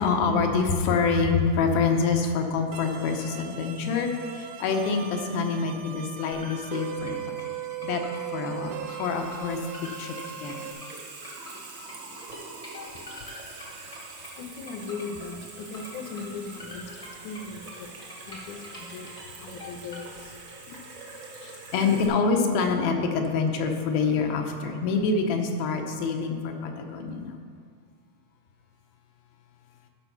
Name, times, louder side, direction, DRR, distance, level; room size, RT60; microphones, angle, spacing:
voice 1, 0.0-7.3 7.8-8.0 8.3-9.6 10.0-10.7 20.7-20.8 21.3-27.4, left 4 dB, 90° left, 3 dB, 2.7 m, -26 dB
sound 1, 2.7-10.7, right 10 dB, 75° right, 1.9 m, -38 dB
sound 2, 6.3-20.0, left 2 dB, 35° left, 0.5 m, -45 dB
Water tap faucet / Sink (filling or washing), 8.4-22.1, right 3 dB, 55° right, 1.3 m, -45 dB
voice 2, 12.3-21.7, left 4 dB, 75° left, 5 dB, 1.9 m, -41 dB
13.0 x 5.3 x 5.6 m, 2.1 s
omnidirectional pair, 4.1 m